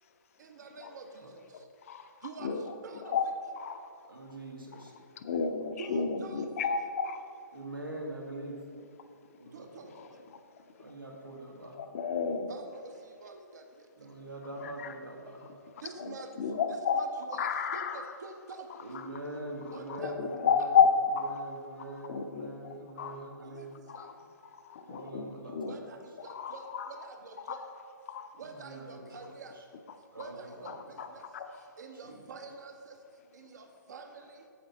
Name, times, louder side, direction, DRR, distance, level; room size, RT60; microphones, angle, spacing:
voice 1, 0.4-1.7 2.2-3.2 5.8-6.7 9.5-9.9 10.5-10.6 12.5-14.2 15.8-18.7 19.7-20.1 20.6-20.7 23.4-24.2 25.6-27.7 28.3-29.6 30.2-33.0 33.3-34.5, right 4 dB, 55° right, 5 dB, 0.8 m, -47 dB
voice 2, 2.4-2.7 3.0-3.3 3.6-3.8 5.2-7.2 11.8-12.5 14.6-14.9 16.0-17.0 17.4-18.0 19.9-20.9 21.2-21.3 22.1-22.5 23.0-23.2 23.9-24.1 24.6-25.7 26.3-26.9 27.5-27.6 28.1-28.3 30.7-31.1 31.3-31.5, left 6 dB, 40° left, 7 dB, 0.6 m, -30 dB
voice 3, 4.1-4.9 7.5-8.6 9.4-10.0 10.8-11.8 14.0-15.5 18.8-20.8 21.2-23.7 24.9-26.0 28.4-29.4 30.1-31.1 32.0-32.2, right 1 dB, 85° right, -2 dB, 1.9 m, -43 dB
8.6 x 7.2 x 4.0 m, 2.4 s
figure-of-eight pair, 130°, 11 cm